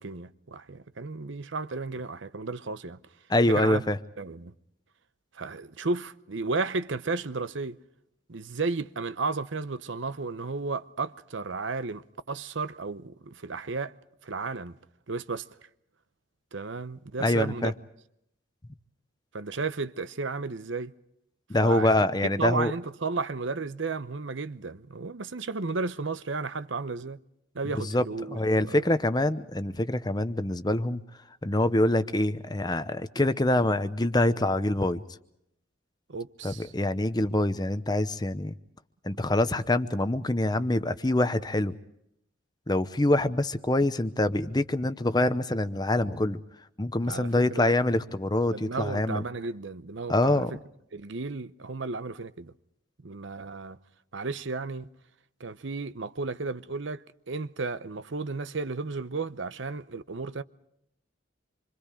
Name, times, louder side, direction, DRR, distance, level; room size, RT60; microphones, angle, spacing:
voice 1, 0.0-3.0 3.5-3.8 4.2-4.5 5.3-7.8 8.3-13.9 14.2-14.8 15.1-15.5 16.5-17.7 19.3-20.9 21.6-21.9 22.4-27.2 27.5-28.9 36.1-36.7 39.2-39.3 47.0-47.8 48.5-50.4 50.9-52.5 53.0-53.8 54.1-54.9 55.4-60.4, right 3 dB, 70° right, 0.8 m, -33 dB
voice 2, 3.3-4.0 17.2-17.7 21.5-22.7 27.8-31.0 31.4-35.0 36.4-38.5 39.0-41.7 42.7-46.4 46.8-49.2 50.1-50.5, left 1 dB, 20° left, 0.8 m, -25 dB
27.0 x 25.0 x 5.0 m
head